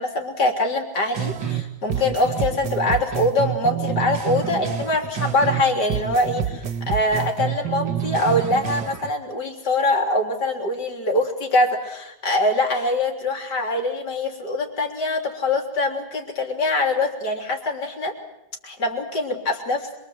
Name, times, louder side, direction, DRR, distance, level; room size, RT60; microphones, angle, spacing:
voice 1, 0.0-18.1 18.6-20.0, left 2 dB, 65° left, 2 dB, 4.2 m, -23 dB
sound 1, 1.1-1.6 1.9-5.6 5.9-9.1, right 9 dB, 80° right, 2.3 m, -28 dB
26.0 x 24.0 x 8.0 m, 0.88 s
omnidirectional pair, 1.9 m